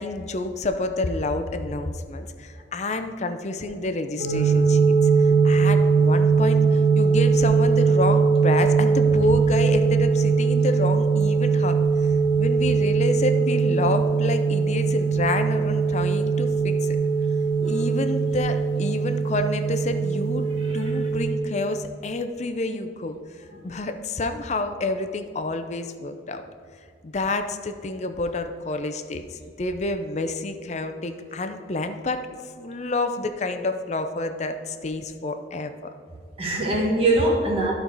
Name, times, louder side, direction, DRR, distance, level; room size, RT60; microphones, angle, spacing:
voice 1, 0.0-4.8 5.4-11.8 12.4-17.0 17.7-20.4 20.7-23.2 23.6-26.4 27.0-32.2 32.6-35.9, left 2 dB, 40° left, 8 dB, 0.5 m, -28 dB
sound 1, 4.2-21.3, right 5 dB, 90° right, 2.1 m, -21 dB
voice 2, 36.4-37.7, right 2 dB, 35° right, -2 dB, 1.6 m, -23 dB
13.5 x 4.6 x 4.0 m, 2.1 s
head